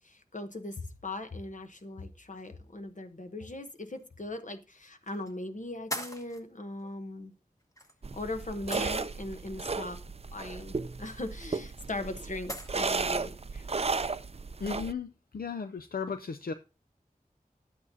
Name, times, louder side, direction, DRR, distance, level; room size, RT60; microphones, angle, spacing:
voice 1, 0.0-7.3 8.1-10.0 10.3-13.7, left 2 dB, 55° left, 1.0 m, -39 dB
sound 1, 3.9-4.0 5.1-5.3 5.9-6.4 7.8-7.9 8.7-9.3 11.3-11.4 12.5-12.8, equal, 20° left, 1.2 m, -39 dB
sound 2, 8.0-14.9, right 4 dB, 40° right, 0.4 m, -34 dB
voice 2, 14.6-16.5, left 5 dB, 75° left, 0.4 m, -35 dB
11.0 x 8.5 x 2.7 m
wide cardioid pair, 50°, 15 cm